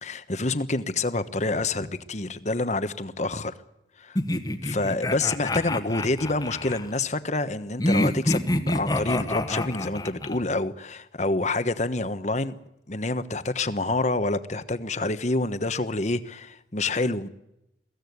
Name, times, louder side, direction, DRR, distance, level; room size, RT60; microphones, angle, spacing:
voice 1, 0.0-3.5 4.0-4.2 4.6-12.6 12.9-17.3, left 2 dB, 40° left, 1.2 m, -27 dB
sound 1, 4.2-6.9 7.8-10.4, left 1 dB, 20° left, 1.4 m, -27 dB
22.5 x 15.5 x 9.6 m
head